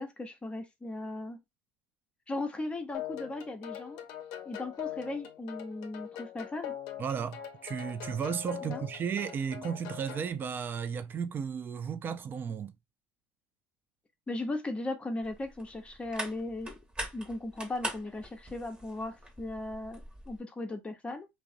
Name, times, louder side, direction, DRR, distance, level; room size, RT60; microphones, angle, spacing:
voice 1, 0.0-1.4 2.3-4.0 4.4-6.7 8.6-8.8 14.3-16.7 17.1-21.3, left 2 dB, 20° left, 0.7 m, -37 dB
sound 1, 2.9-10.3, left 11 dB, 70° left, 0.5 m, -42 dB
voice 2, 7.0-12.7, right 7 dB, 35° right, 0.3 m, -34 dB
sound 2, 15.2-20.4, right 1 dB, 15° right, 1.1 m, -43 dB
2.5 x 2.0 x 2.5 m
supercardioid pair, 95°, 6 cm